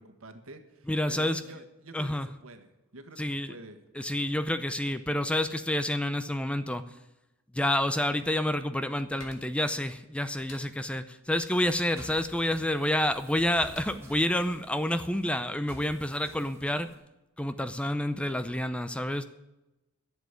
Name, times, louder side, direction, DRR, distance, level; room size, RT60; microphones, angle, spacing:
voice 1, 0.0-3.8, right 2 dB, 75° right, 7 dB, 1.6 m, -48 dB
voice 2, 0.9-1.4 1.9-2.3 3.2-3.5 3.9-6.8 7.5-16.9 17.4-19.2, left 1 dB, 5° left, 12 dB, 0.5 m, -29 dB
sound 1, 9.1-15.7, left 3 dB, 70° left, 2.1 m, -56 dB
sound 2, 11.6-16.9, equal, 10° right, 2.9 m, -50 dB
11.5 x 7.3 x 9.6 m, 0.99 s
head